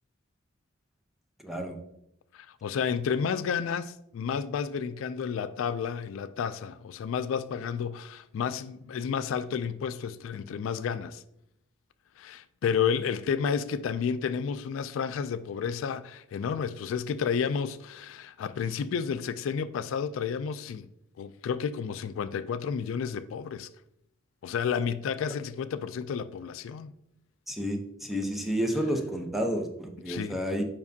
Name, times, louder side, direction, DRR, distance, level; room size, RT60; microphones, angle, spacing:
voice 1, 1.4-1.8 27.5-30.6, equal, ahead, 0.7 m, -30 dB
voice 2, 2.3-11.2 12.2-20.9 21.2-23.7 24.4-26.9 30.1-30.4, left 7 dB, 75° left, 0.3 m, -31 dB
7.2 x 5.3 x 2.7 m
head